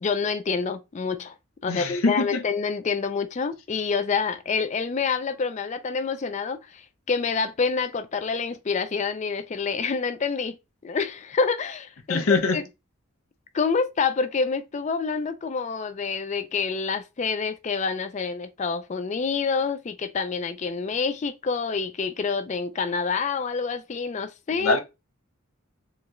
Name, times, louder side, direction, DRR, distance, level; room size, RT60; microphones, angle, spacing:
voice 1, 0.0-1.3 1.6-10.6 10.8-12.6 13.5-24.8, left 5 dB, 30° left, 0.3 m, -27 dB
voice 2, 1.7-2.4 12.1-12.6 24.6-24.8, left 3 dB, 75° left, 0.7 m, -23 dB
3.8 x 2.2 x 3.0 m
head